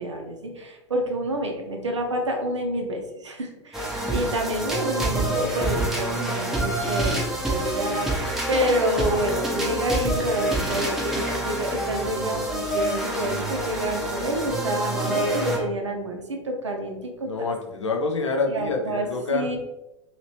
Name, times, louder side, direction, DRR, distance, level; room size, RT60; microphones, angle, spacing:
voice 1, 0.0-17.3 18.5-19.6, right 1 dB, 80° right, 2 dB, 0.5 m, -28 dB
sound 1, 3.7-15.7, right 1 dB, ahead, 0.6 m, -27 dB
voice 2, 17.3-19.5, left 3 dB, 80° left, 2 dB, 0.5 m, -26 dB
2.8 x 2.8 x 3.0 m, 0.97 s
figure-of-eight pair, 90°, 15 cm